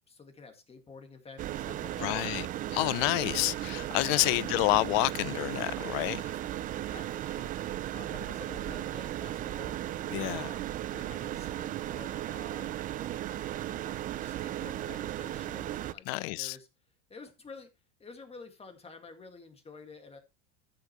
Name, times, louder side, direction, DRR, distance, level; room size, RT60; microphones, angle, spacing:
voice 1, 0.1-2.2 6.7-7.5 7.9-9.8 10.3-12.9 14.2-16.7 17.1-17.7 18.0-20.2, left 4 dB, 15° left, 2.0 m, -50 dB
sound 1, 1.4-15.9, right 13 dB, 25° right, 0.4 m, -36 dB
voice 2, 2.0-6.2 10.1-10.5 16.1-16.6, left 23 dB, 55° left, 0.5 m, -29 dB
13.5 x 6.3 x 3.1 m
supercardioid pair, 125°, 34 cm